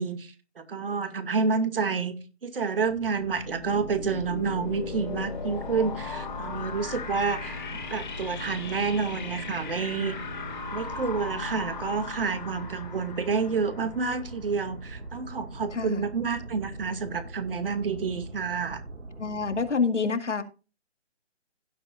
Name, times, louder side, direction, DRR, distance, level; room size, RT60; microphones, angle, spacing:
voice 1, 0.0-2.1 2.4-7.6 7.9-10.2 10.7-18.8, right 5 dB, 50° right, 2.2 m, -29 dB
sound 1, 2.9-14.6, left 5 dB, 40° left, 2.8 m, -38 dB
sound 2, 3.7-19.7, right 2 dB, 90° right, 2.0 m, -42 dB
voice 2, 15.7-16.0 19.2-20.4, left 5 dB, 80° left, 2.1 m, -27 dB
16.5 x 7.9 x 2.5 m
figure-of-eight pair, 155°, 35 cm